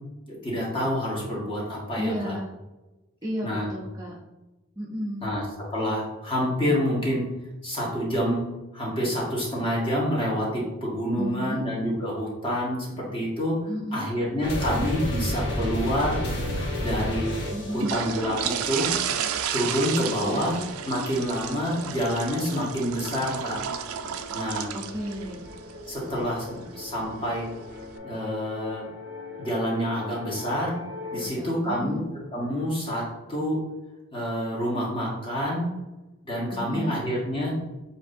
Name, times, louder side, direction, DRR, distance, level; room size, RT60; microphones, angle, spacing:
voice 1, 0.3-2.4 3.4-3.7 5.2-5.4 5.7-7.3 7.6-8.5 8.7-13.6 13.9-16.5 16.8-17.3 17.7-18.9 19.5-23.6 24.3-24.7 25.9-27.5 28.0-28.9 29.4-30.7 31.1-32.0 32.3-33.6 34.1-35.7 36.2-37.5, equal, 25° left, -5 dB, 1.4 m, -27 dB
voice 2, 2.0-2.5 3.2-4.2 4.8-5.3 11.2-11.6 13.7-14.1 17.5-17.9 20.2-20.5 24.7-25.4 31.1-32.0 36.5-37.0, equal, 15° right, -4 dB, 0.5 m, -33 dB
sound 1, 14.4-31.3, left 1 dB, 50° left, 1.1 m, -35 dB
sound 2, 15.6-28.0, right 8 dB, 80° right, 0.4 m, -34 dB
7.2 x 2.7 x 2.6 m, 1.0 s
head